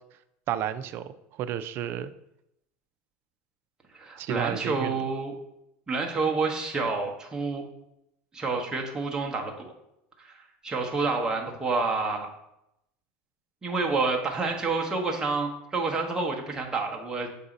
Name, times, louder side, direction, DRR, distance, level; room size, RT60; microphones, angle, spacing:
voice 1, 0.5-1.1 1.4-2.1 4.2-5.0, right 10 dB, 50° right, 12 dB, 0.4 m, -31 dB
voice 2, 3.9-5.3 5.9-7.6 8.3-9.7 10.2-12.3 13.6-17.3, right 3 dB, 15° right, 0 dB, 1.0 m, -29 dB
6.8 x 2.8 x 5.0 m, 0.82 s
supercardioid pair, 130°, 5 cm